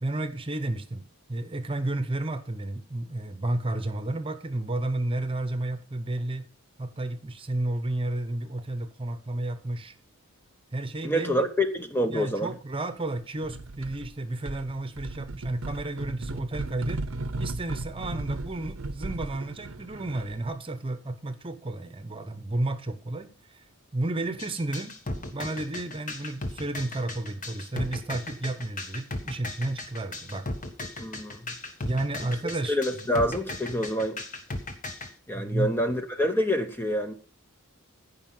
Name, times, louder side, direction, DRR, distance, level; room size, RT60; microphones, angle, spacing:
voice 1, 0.0-6.5 6.8-9.9 10.7-11.5 12.1-17.0 17.4-23.6 23.9-30.5 31.8-33.2 35.3-35.7, right 2 dB, 25° right, 1.0 m, -32 dB
voice 2, 11.0-12.5 31.0-31.4 32.7-34.2 35.3-37.1, equal, 10° left, 0.8 m, -27 dB
sound 1, 13.4-14.1 14.4-20.5, right 2 dB, 70° right, 0.8 m, -36 dB
sound 2, 24.4-35.1, left 2 dB, 35° left, 1.6 m, -36 dB
15.0 x 5.7 x 5.6 m
head